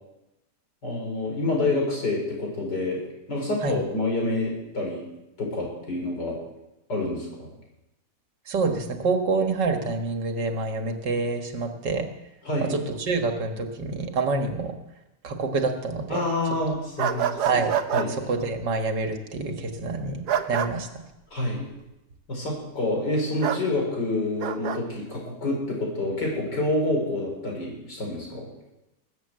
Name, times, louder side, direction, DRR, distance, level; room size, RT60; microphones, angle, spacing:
voice 1, 0.8-3.0 3.3-5.0 5.4-6.4 6.9-7.5 12.5-12.7 16.1-17.4 17.9-18.1 21.3-21.7 22.3-28.5, left 2 dB, 75° left, -1 dB, 5.6 m, -27 dB
voice 2, 8.5-12.1 12.6-14.7 15.2-16.2 17.5-17.7 18.1-20.2 20.5-20.9, right 3 dB, 85° right, 5 dB, 2.3 m, -27 dB
sound 1, 17.0-18.1 20.3-20.7 23.4-23.6 24.4-24.8, right 9 dB, 65° right, 1.4 m, -26 dB
20.0 x 8.7 x 7.8 m, 0.93 s
omnidirectional pair, 1.8 m